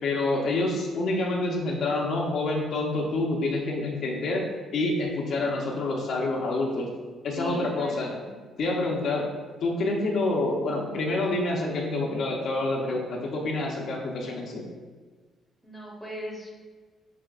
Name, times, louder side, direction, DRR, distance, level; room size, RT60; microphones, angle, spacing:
voice 1, 0.0-4.4 4.7-6.9 7.2-8.1 8.6-9.3 9.6-14.7, left 2 dB, 60° left, -1 dB, 0.6 m, -27 dB
voice 2, 7.4-8.3 15.6-16.5, left 1 dB, ahead, -4 dB, 0.9 m, -38 dB
5.9 x 2.7 x 2.4 m, 1.4 s
cardioid pair, 120°, 0 cm